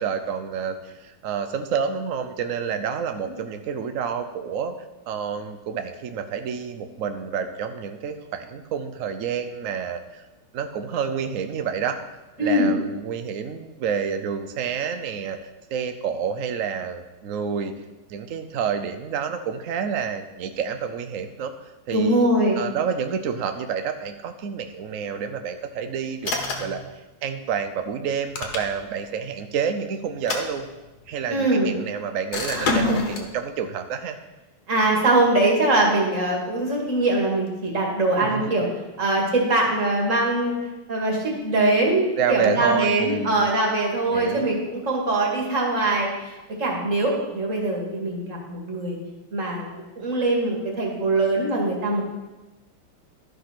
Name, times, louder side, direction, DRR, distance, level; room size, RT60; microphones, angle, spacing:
voice 1, 0.0-4.7 5.1-10.2 10.5-12.0 12.4-15.4 15.7-17.8 18.1-21.5 21.9-22.2 22.6-26.3 26.6-26.8 27.2-30.8 31.1-34.2 38.2-38.4 42.2-43.5 44.1-44.5, right 7 dB, 85° right, 8 dB, 0.7 m, -28 dB
voice 2, 12.4-12.7 21.9-22.6 31.3-31.8 32.5-33.0 34.7-38.7 39.0-40.5 40.9-49.0 49.3-52.0, right 2 dB, 40° right, 0 dB, 2.3 m, -22 dB
sound 1, 26.2-26.8 28.1-29.0 30.1-31.1 32.3-33.3, left 3 dB, 55° left, 1.6 m, -29 dB
12.5 x 5.4 x 5.9 m, 1.1 s
omnidirectional pair, 2.3 m